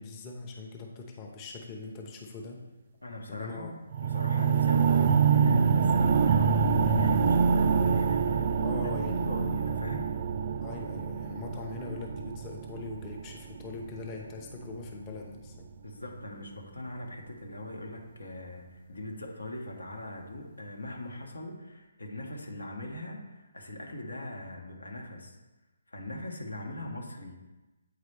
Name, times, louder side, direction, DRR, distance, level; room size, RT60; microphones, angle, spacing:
voice 1, 0.0-2.6 3.3-3.7 8.6-9.3 10.6-15.7, left 3 dB, 25° left, 0 dB, 0.7 m, -41 dB
voice 2, 3.0-3.7 4.0-10.1 15.8-25.4 25.9-27.3, left 1 dB, 90° left, 1 dB, 1.3 m, -40 dB
sound 1, 3.9-14.0 14.7-14.8, right 6 dB, 45° right, 0.4 m, -26 dB
8.2 x 4.0 x 3.3 m, 1.1 s
figure-of-eight pair, 150°, 0 cm